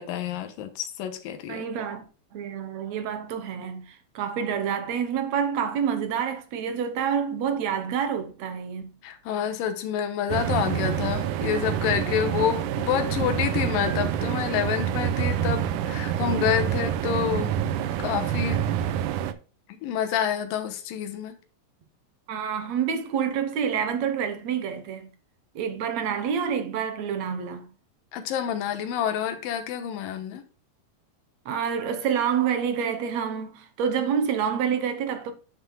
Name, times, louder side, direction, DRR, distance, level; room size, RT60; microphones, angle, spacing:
voice 1, 0.0-1.6 9.0-17.5 18.0-18.6 19.8-21.3 28.1-30.4, left 9 dB, 85° left, 2.8 m, -28 dB
voice 2, 1.5-2.0 2.3-8.9 22.3-25.1 25.6-27.7 31.5-35.3, right 7 dB, 65° right, 2.0 m, -28 dB
sound 1, 10.3-19.3, right 10 dB, 80° right, 2.0 m, -27 dB
11.0 x 7.0 x 2.3 m
omnidirectional pair, 3.9 m